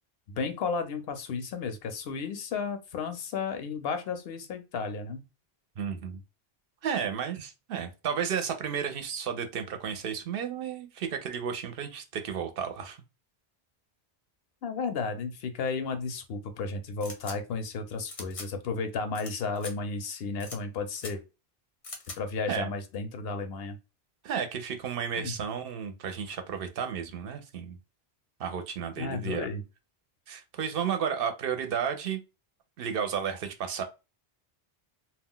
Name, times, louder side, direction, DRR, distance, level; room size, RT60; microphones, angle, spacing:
voice 1, 0.3-5.2 14.6-21.2 22.2-23.8 25.2-25.3 29.0-29.6, left 4 dB, 75° left, 0.8 m, -33 dB
voice 2, 5.8-6.2 6.8-13.0 22.5-22.7 24.2-27.8 28.4-29.5 30.3-32.2 32.8-33.8, right 7 dB, 70° right, 0.7 m, -32 dB
sound 1, 17.0-17.4 18.1-18.5 19.1-19.3 19.6-19.7 20.4-20.6 21.0-21.1 21.8-22.2, left 3 dB, 40° left, 0.6 m, -41 dB
2.3 x 2.2 x 3.6 m
omnidirectional pair, 1.0 m